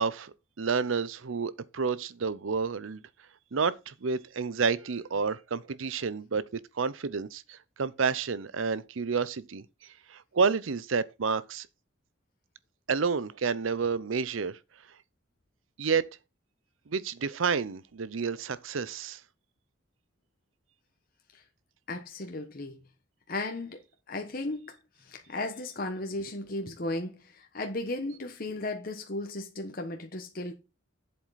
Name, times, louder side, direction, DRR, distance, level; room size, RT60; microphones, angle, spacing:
voice 1, 0.0-3.0 3.5-11.7 12.9-14.6 15.8-16.1 16.9-19.2, right 5 dB, 85° right, 0.6 m, -30 dB
voice 2, 21.9-22.8 23.3-23.8 24.1-24.7 25.0-30.5, left 2 dB, 45° left, 1.1 m, -35 dB
7.8 x 7.4 x 4.1 m
head